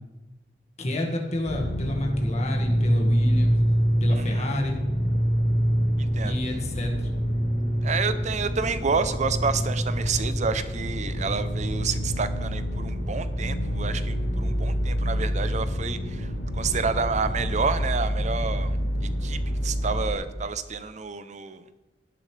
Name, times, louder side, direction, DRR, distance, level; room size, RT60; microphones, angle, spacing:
voice 1, 0.8-3.6 4.0-4.8 6.2-7.1, left 1 dB, 40° left, 0 dB, 1.8 m, -28 dB
sound 1, 1.4-20.2, equal, 85° left, 3.8 m, -26 dB
voice 2, 4.1-4.5 6.0-6.4 7.8-21.6, right 5 dB, 40° right, 12 dB, 0.6 m, -29 dB
17.5 x 6.9 x 3.3 m, 1.1 s
head